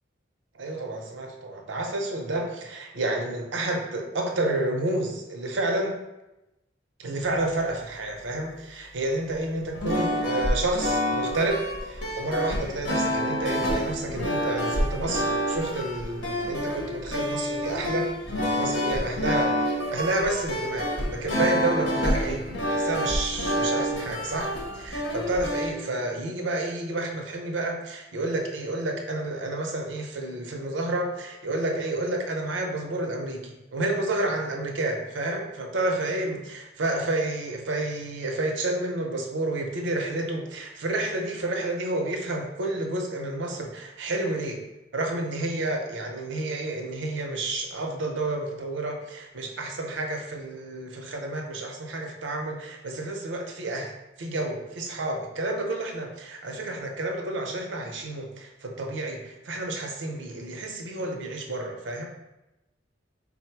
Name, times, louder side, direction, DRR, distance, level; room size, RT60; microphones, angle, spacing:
voice 1, 0.5-6.0 7.0-18.1 18.5-44.6 44.9-53.9 54.2-62.1, right 2 dB, 75° right, 2 dB, 0.6 m, -30 dB
sound 1, 9.7-25.7, equal, 85° left, 0.9 m, -28 dB
3.9 x 2.1 x 4.4 m, 0.94 s
head